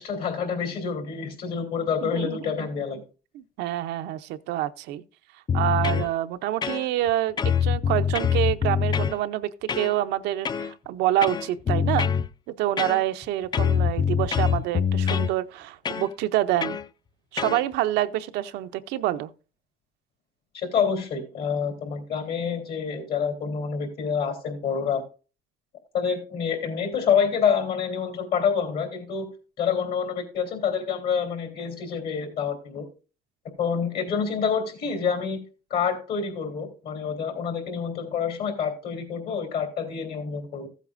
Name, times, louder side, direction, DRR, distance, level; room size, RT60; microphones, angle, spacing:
voice 1, 0.0-3.0 20.5-25.0 25.9-29.3 29.6-32.8 33.6-35.4 35.7-40.7, left 6 dB, 65° left, 3.3 m, -27 dB
voice 2, 2.0-2.7 3.3-5.0 5.5-12.1 12.5-16.8 17.3-19.3, right 13 dB, 85° right, 0.6 m, -27 dB
sound 1, 5.5-6.1 6.6-7.1 7.4-9.2 9.7-9.9 10.4-10.7 11.2-12.3 12.8-13.2 13.5-15.3 15.8-16.1 16.6-16.8 17.4-17.6, left 7 dB, 25° left, 0.3 m, -24 dB
15.0 x 8.2 x 2.5 m
cardioid pair, 110°, 17 cm